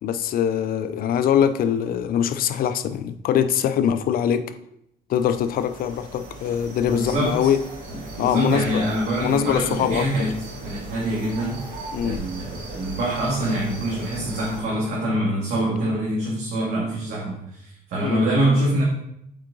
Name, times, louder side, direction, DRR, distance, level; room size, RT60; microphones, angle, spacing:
voice 1, 0.0-4.4 5.1-7.6 8.2-8.8 9.1-10.1 11.9-12.2 18.0-18.3, left 9 dB, 60° left, 11 dB, 0.5 m, -22 dB
sound 1, 5.1-14.6, right 1 dB, 55° right, 1.9 m, -38 dB
voice 2, 6.9-7.5 7.9-10.3 10.6-11.6 12.0-18.8, right 1 dB, 70° right, -6 dB, 2.2 m, -25 dB
7.4 x 4.7 x 3.9 m, 0.76 s
cardioid pair, 110°, 17 cm